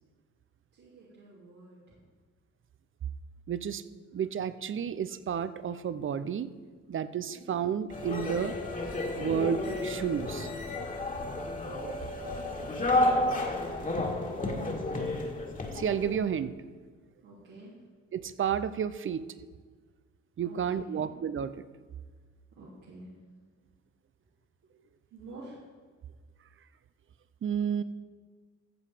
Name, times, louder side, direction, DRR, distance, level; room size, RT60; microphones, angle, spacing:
voice 1, 0.7-2.1 7.2-7.7 17.2-17.8 20.4-21.1 22.6-23.2 24.6-24.8 25.1-25.6, right 2 dB, 85° right, -8 dB, 3.0 m, -50 dB
voice 2, 3.5-3.8 4.1-6.5 6.9-8.6 9.2-10.5 15.7-16.5 18.1-19.2 20.4-21.5 27.4-27.8, right 8 dB, 40° right, 14 dB, 0.6 m, -31 dB
sound 1, 7.9-16.2, left 2 dB, 25° left, 2.0 m, -31 dB
14.5 x 7.3 x 5.0 m, 1.5 s
cardioid pair, 90°, 30 cm